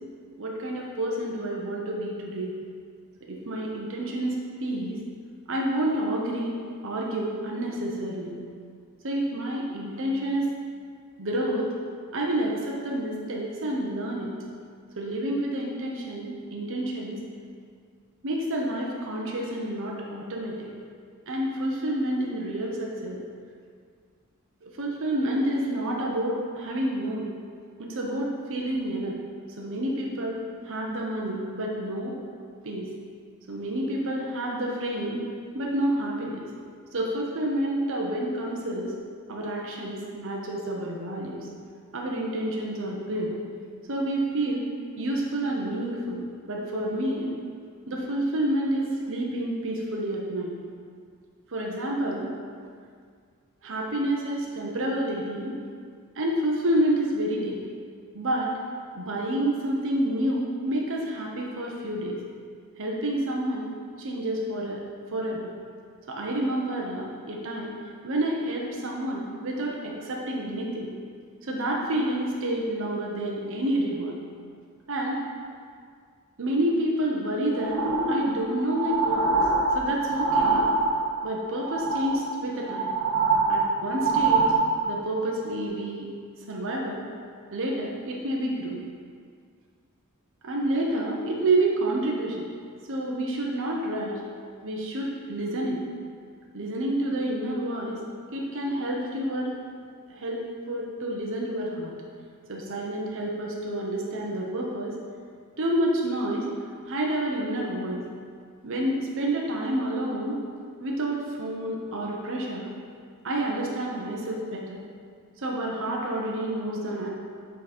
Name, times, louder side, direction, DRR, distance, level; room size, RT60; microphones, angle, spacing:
voice 1, 0.4-2.5 3.3-5.0 5.5-6.5 6.8-8.3 9.0-10.5 11.2-11.7 12.1-14.3 15.0-17.2 18.2-20.7 21.3-23.2 24.6-27.2 27.8-29.2 29.6-32.2 32.6-32.9 33.5-35.2 35.5-36.4 36.9-38.9 39.3-41.4 41.9-43.4 43.9-44.7 45.0-46.2 46.5-47.3 47.9-50.5 51.5-52.3 53.6-55.6 56.2-57.6 58.1-58.5 58.9-62.2 62.8-63.7 64.0-64.8 65.1-65.5 66.1-67.7 68.0-70.9 71.4-74.1 74.9-75.2 76.4-77.8 78.1-79.5 79.7-80.7 81.2-82.9 83.5-84.4 84.9-86.1 86.5-87.0 87.5-88.8 90.4-92.5 92.9-94.2 94.6-95.8 96.5-98.0 98.3-99.5 100.1-101.9 102.5-105.0 105.6-106.5 106.9-108.0 108.6-110.4 110.8-112.7 113.2-114.8 115.4-117.1, right 1 dB, 60° right, -2 dB, 0.9 m, -29 dB
sound 1, 77.5-81.2 81.6-82.3 82.6-85.0 85.6-85.7, right 3 dB, 90° right, 1.1 m, -24 dB
7.4 x 4.0 x 4.3 m, 2.1 s
head